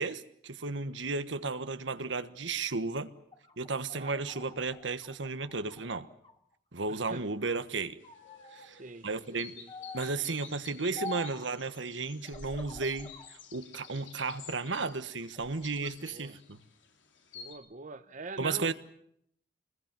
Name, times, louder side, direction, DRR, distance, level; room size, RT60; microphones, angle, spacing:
voice 1, 0.0-3.1 3.6-6.1 6.7-8.0 8.5-9.5 9.9-16.6 18.4-18.7, right 3 dB, 80° right, 11 dB, 1.3 m, -34 dB
sound 1, 3.2-6.4 6.8-7.6 8.0-8.7 9.7-10.2 11.0-11.5 12.2-13.3 13.8-14.7 15.2-15.9, left 2 dB, 30° left, 2.4 m, -47 dB
voice 2, 6.9-7.3 8.7-9.7 16.0-16.4 17.3-18.7, right 3 dB, 45° right, 10 dB, 0.9 m, -45 dB
sound 2, 8.0-17.5, left 6 dB, 90° left, 3.4 m, -52 dB
26.0 x 21.0 x 7.6 m, 0.70 s
head